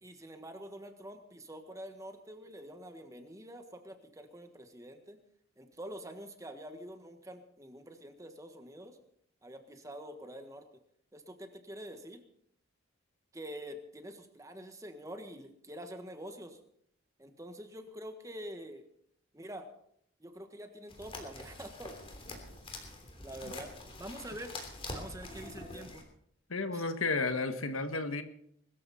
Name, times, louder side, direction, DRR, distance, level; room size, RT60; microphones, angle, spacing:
voice 1, 0.0-5.2 5.6-9.0 9.4-10.8 11.1-12.2 13.3-16.6 17.2-18.8 19.3-19.7 20.2-22.0 23.2-24.5 24.9-26.1 26.7-26.8, equal, 15° right, 6 dB, 1.5 m, -46 dB
sound 1, 20.9-26.0, left 2 dB, 25° left, 3.2 m, -45 dB
voice 2, 26.5-28.2, left 3 dB, 85° left, 8 dB, 1.5 m, -32 dB
22.0 x 13.5 x 4.2 m, 0.69 s
head